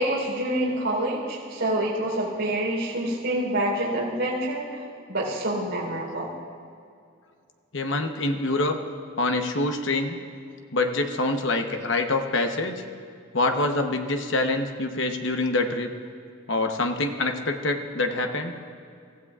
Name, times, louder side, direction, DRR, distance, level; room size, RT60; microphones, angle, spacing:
voice 1, 0.0-4.6 5.1-6.3, right 1 dB, 60° right, -5 dB, 3.9 m, -27 dB
voice 2, 7.7-8.8 9.2-10.2 10.7-12.7 13.3-15.9 16.5-18.5, left 2 dB, 60° left, 5 dB, 1.0 m, -25 dB
24.0 x 15.0 x 2.4 m, 2.3 s
head